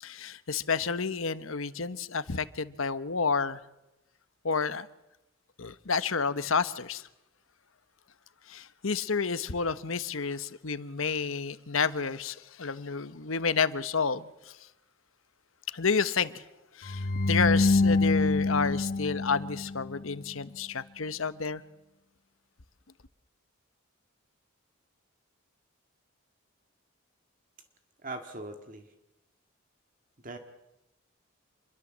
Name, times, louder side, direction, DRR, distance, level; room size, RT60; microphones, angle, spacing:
voice 1, 0.0-3.6 4.4-4.9 5.6-7.1 8.5-14.6 15.7-16.4 16.7-21.6, left 5 dB, 75° left, 1.1 m, -30 dB
sound 1, 16.8-20.0, left 3 dB, 40° left, 1.0 m, -26 dB
voice 2, 28.0-28.9 30.2-30.4, right 2 dB, 40° right, 1.9 m, -40 dB
27.5 x 22.0 x 7.5 m
head